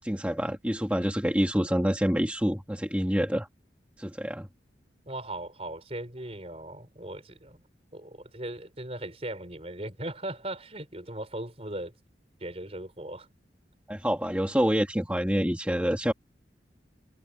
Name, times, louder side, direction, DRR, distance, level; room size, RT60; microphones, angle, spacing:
voice 1, 0.0-3.5 4.0-4.5 13.9-16.1, equal, 10° right, 1.9 m, -27 dB
voice 2, 5.1-7.6 7.9-11.9 12.4-13.3, right 1 dB, 35° right, 4.4 m, -38 dB
head